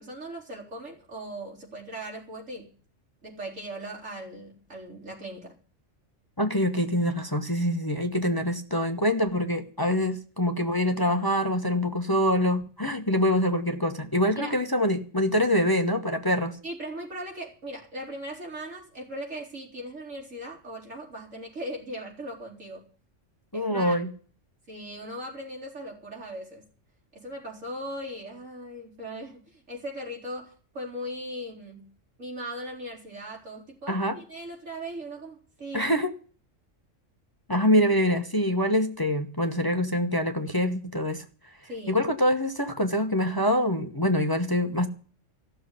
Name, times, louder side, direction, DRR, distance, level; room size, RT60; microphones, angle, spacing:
voice 1, 0.0-2.7 3.2-5.6 14.4-14.6 16.6-22.8 23.5-24.0 24.7-26.7 27.1-31.8 32.2-35.9 41.6-42.0, right 1 dB, 80° right, 4.6 m, -39 dB
voice 2, 6.4-16.6 23.5-24.1 33.9-34.2 35.7-36.1 37.5-41.2 41.9-44.9, left 1 dB, 20° left, 1.1 m, -25 dB
15.0 x 6.8 x 9.9 m
omnidirectional pair, 1.3 m